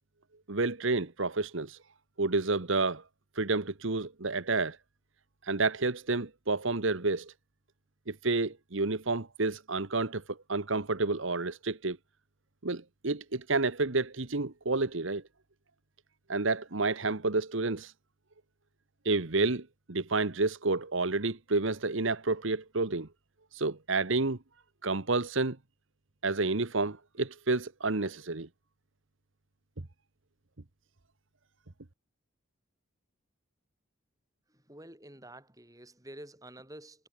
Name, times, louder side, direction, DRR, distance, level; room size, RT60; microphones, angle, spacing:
voice 1, 0.5-1.8 2.2-3.0 3.4-4.8 5.4-7.3 8.1-12.0 12.6-15.2 16.3-17.9 19.0-23.1 23.5-24.4 24.8-25.6 26.2-28.5, right 3 dB, 65° right, 1.3 m, -30 dB
voice 2, 34.5-37.1, right 1 dB, 15° right, 4.9 m, -49 dB
head